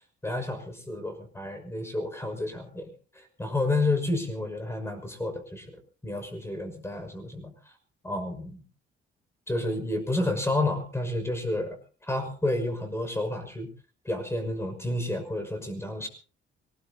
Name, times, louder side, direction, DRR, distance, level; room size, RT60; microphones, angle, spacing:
voice 1, 0.2-2.9 3.1-5.6 6.0-7.5 8.0-8.6 9.5-11.8 12.0-13.7 14.0-16.1, left 2 dB, 15° left, 6 dB, 6.0 m, -30 dB
25.0 x 20.0 x 2.9 m, 0.38 s
cardioid pair, 90°, 20 cm